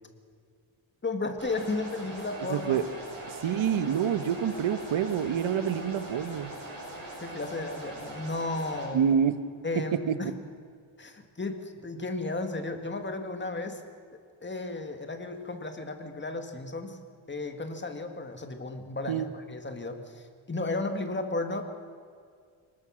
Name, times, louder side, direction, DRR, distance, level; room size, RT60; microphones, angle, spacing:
voice 1, 1.0-2.8 7.2-9.0 9.6-10.3 11.0-13.8 14.4-17.0 17.3-21.6, left 2 dB, 20° left, 5 dB, 1.9 m, -34 dB
sound 1, 1.4-8.8, right 1 dB, 40° right, 8.0 m, -42 dB
voice 2, 2.5-2.8 3.3-6.5 8.9-9.3 10.1-10.2 19.1-19.3, right 8 dB, 70° right, 11 dB, 1.3 m, -27 dB
24.0 x 20.0 x 6.4 m, 2.1 s
wide cardioid pair, 140°, 49 cm